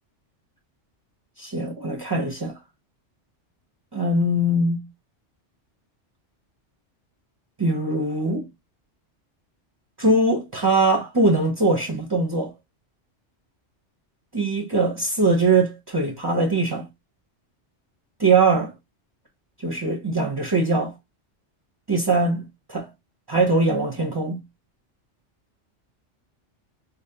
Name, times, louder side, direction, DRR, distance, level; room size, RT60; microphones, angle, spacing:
voice 1, 1.4-2.6 3.9-4.9 7.6-8.5 10.0-12.5 14.3-16.9 18.2-18.7 19.6-20.9 21.9-22.9 23.3-24.4, right 2 dB, 25° right, 0.6 m, -22 dB
5.2 x 2.0 x 2.7 m
omnidirectional pair, 1.2 m